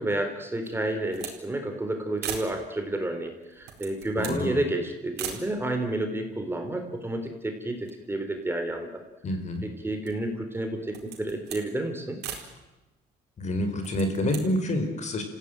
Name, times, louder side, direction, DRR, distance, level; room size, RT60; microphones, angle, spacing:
voice 1, 0.0-8.9 9.6-12.2, right 1 dB, 15° right, 5 dB, 3.8 m, -30 dB
sound 1, 0.6-1.4 1.7-1.8 2.2-2.6 3.4-4.5 5.2-5.5 6.2-6.3 6.5-7.4 7.8-9.0 9.6-10.3 10.8-11.7 12.2-12.5 13.7-14.5, right 9 dB, 80° right, 4.5 m, -39 dB
voice 2, 4.2-4.6 9.2-9.7 13.4-15.2, left 1 dB, 45° left, 6 dB, 4.4 m, -28 dB
28.5 x 16.0 x 9.1 m, 1.0 s
cardioid pair, 110°, 17 cm